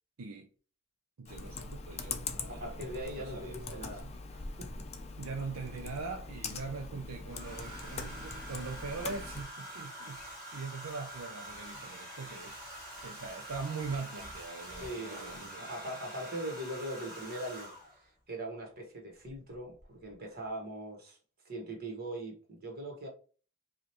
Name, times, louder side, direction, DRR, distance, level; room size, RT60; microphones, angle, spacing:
voice 1, 0.2-0.5 1.2-2.8 3.2-4.1 5.2-12.6 13.0-15.7, right 4 dB, 75° right, 0.5 m, -42 dB
Computer keyboard, 1.2-9.4, left 4 dB, 30° left, 0.5 m, -42 dB
voice 2, 2.5-5.0 14.7-21.2 21.4-23.1, right 1 dB, 45° right, 1.4 m, -41 dB
Domestic sounds home sounds, 7.3-18.0 19.3-19.5 19.8-20.1, right 1 dB, 20° right, 1.8 m, -46 dB
4.9 x 2.4 x 2.9 m
head